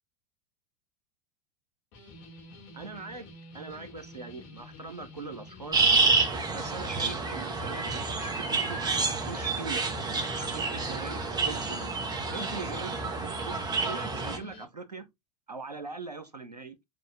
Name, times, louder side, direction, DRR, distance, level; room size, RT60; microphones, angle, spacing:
sound 1, 1.9-14.7, left 2 dB, 55° left, 3.3 m, -49 dB
voice 1, 2.7-3.3 3.5-5.9 6.5-8.8 9.2-9.8 10.3-12.0 12.3-15.1 15.5-16.8, right 4 dB, 85° right, 1.2 m, -41 dB
sound 2, 5.7-14.4, right 4 dB, 20° right, 1.8 m, -28 dB
7.4 x 4.7 x 3.5 m
figure-of-eight pair, 80°, 20 cm